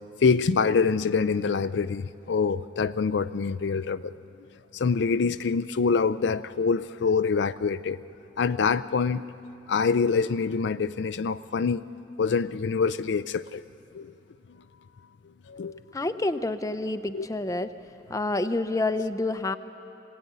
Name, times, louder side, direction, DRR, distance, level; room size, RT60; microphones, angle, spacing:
voice 1, 0.2-4.1 4.7-8.0 8.4-9.2 9.7-11.9 12.2-13.6 13.9-14.1 15.5-15.8 17.1-17.3, left 5 dB, 70° left, 13 dB, 0.4 m, -25 dB
voice 2, 15.9-17.7 18.1-19.6, left 2 dB, 20° left, 10 dB, 0.6 m, -28 dB
22.0 x 17.0 x 9.4 m, 2.9 s
head